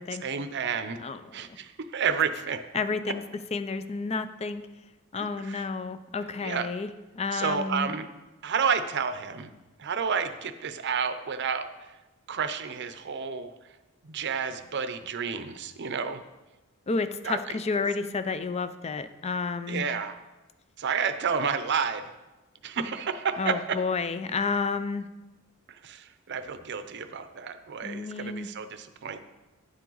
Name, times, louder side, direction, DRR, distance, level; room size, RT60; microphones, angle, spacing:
voice 1, 0.2-1.0 1.3-2.6 5.1-5.6 6.4-6.7 7.3-8.1 8.4-9.5 9.8-11.7 12.3-13.5 14.0-16.2 17.2-17.6 19.7-20.2 20.8-22.1 22.6-23.8 25.7-29.2, right 6 dB, 55° right, 10 dB, 0.6 m, -30 dB
voice 2, 1.0-1.6 2.7-3.2 3.5-4.6 5.1-6.9 7.2-7.9 16.9-19.8 23.4-25.1 27.8-28.5, left 4 dB, 30° left, 12 dB, 0.4 m, -30 dB
9.9 x 7.4 x 3.9 m, 1.1 s
head